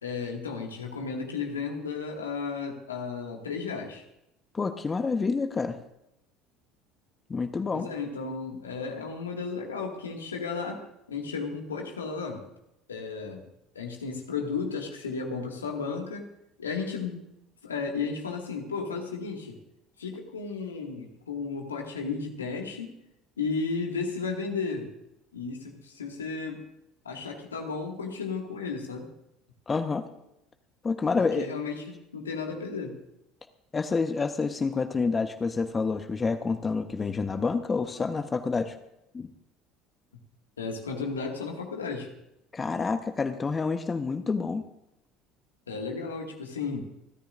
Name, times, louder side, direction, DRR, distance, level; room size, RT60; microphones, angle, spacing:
voice 1, 0.0-4.0 7.7-12.4 12.9-13.5 13.7-16.3 16.6-17.2 17.6-19.6 20.0-23.0 23.4-24.9 25.3-26.6 27.0-29.1 31.4-33.0 40.6-42.1 45.7-46.8, left 4 dB, 80° left, 2 dB, 2.1 m, -34 dB
voice 2, 4.5-5.8 7.3-7.9 29.7-30.1 30.8-31.5 33.7-38.8 39.1-39.3 42.5-44.6, left 4 dB, 25° left, 8 dB, 1.1 m, -28 dB
28.5 x 13.5 x 2.6 m, 0.83 s
figure-of-eight pair, 60°, 0 cm